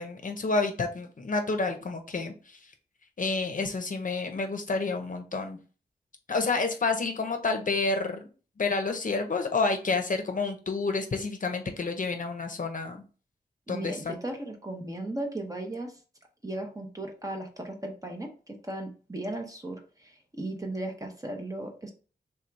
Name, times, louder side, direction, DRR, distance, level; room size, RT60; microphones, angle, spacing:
voice 1, 0.0-2.6 3.2-5.6 6.3-8.3 8.6-13.0 13.7-14.2, left 3 dB, 50° left, 5 dB, 0.7 m, -29 dB
voice 2, 13.7-15.9 16.4-21.9, right 1 dB, 20° right, 3 dB, 0.9 m, -36 dB
3.5 x 2.7 x 4.5 m, 0.37 s
wide cardioid pair, 100°, 17 cm